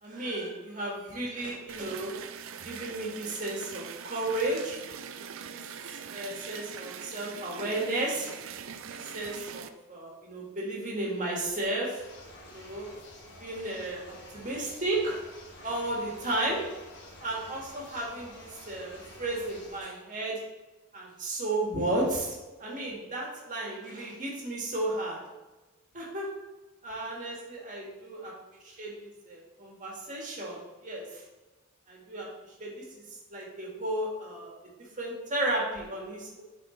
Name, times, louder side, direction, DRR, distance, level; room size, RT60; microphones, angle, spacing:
voice 1, 0.0-2.1 2.6-4.8 5.5-8.3 8.8-12.0 12.5-12.9 13.4-15.2 15.6-16.6 17.2-20.4 20.9-25.2 25.9-26.3 26.8-28.3 28.6-31.2 31.9-32.3 32.6-33.0 33.3-34.5 35.0-36.4, right 2 dB, 40° right, -3 dB, 1.7 m, -33 dB
sound 1, 1.7-9.7, right 7 dB, 70° right, 0.4 m, -42 dB
sound 2, 12.0-19.8, left 1 dB, 60° left, 1.4 m, -49 dB
9.3 x 4.3 x 3.2 m, 1.2 s
head